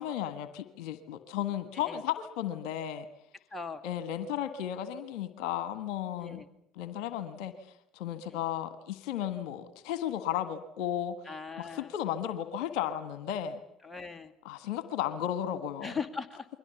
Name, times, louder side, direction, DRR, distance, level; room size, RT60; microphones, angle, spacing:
voice 1, 0.0-3.1 3.8-6.4 6.7-7.5 7.9-11.3 11.6-13.6 14.4-15.9, left 10 dB, 65° left, 11 dB, 1.4 m, -34 dB
voice 2, 3.5-3.8 6.2-6.5 8.3-8.4 11.3-11.9 13.8-14.3 15.8-16.5, left 5 dB, 15° left, 6 dB, 2.2 m, -39 dB
28.5 x 22.5 x 7.0 m, 0.78 s
hypercardioid pair, 60°, 0 cm